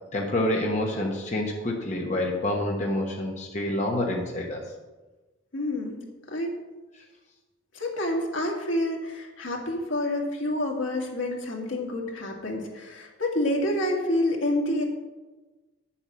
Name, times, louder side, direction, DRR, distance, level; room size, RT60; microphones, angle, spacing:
voice 1, 0.1-4.6, left 1 dB, 35° left, -1 dB, 1.2 m, -27 dB
voice 2, 5.5-6.0 6.3-6.5 7.7-14.8, left 1 dB, 75° left, 0 dB, 2.1 m, -28 dB
10.0 x 7.1 x 6.2 m, 1.2 s
head